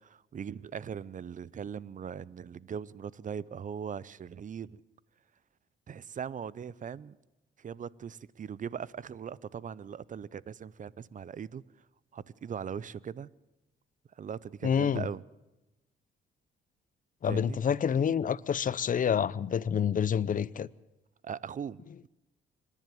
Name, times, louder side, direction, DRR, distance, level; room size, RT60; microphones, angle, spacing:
voice 1, 0.0-4.8 5.9-7.2 7.6-11.6 12.1-13.3 14.2-15.2 17.2-17.6 21.2-22.1, right 7 dB, 40° right, 0.7 m, -40 dB
voice 2, 14.6-15.0 17.2-20.7, left 8 dB, 40° left, 0.7 m, -28 dB
25.5 x 11.0 x 9.3 m
cardioid pair, 90°, 20 cm